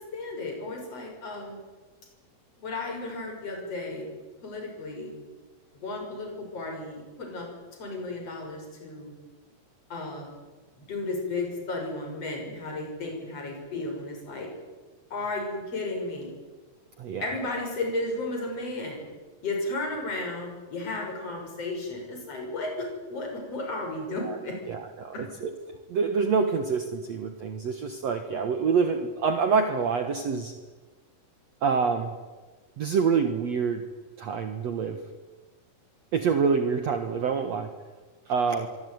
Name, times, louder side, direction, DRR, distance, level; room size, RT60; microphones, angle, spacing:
voice 1, 0.0-1.6 2.6-4.1 4.4-5.1 5.7-7.5 7.8-9.1 9.9-10.3 10.8-14.5 15.1-16.3 17.2-19.0 19.4-24.5 25.1-25.2, left 2 dB, 45° left, 2 dB, 7.5 m, -34 dB
voice 2, 24.7-30.5 31.6-32.1 32.8-33.8 34.2-35.0 36.1-37.7 38.3-38.7, right 5 dB, 55° right, 7 dB, 2.3 m, -26 dB
25.0 x 23.0 x 9.6 m, 1.3 s
omnidirectional pair, 4.1 m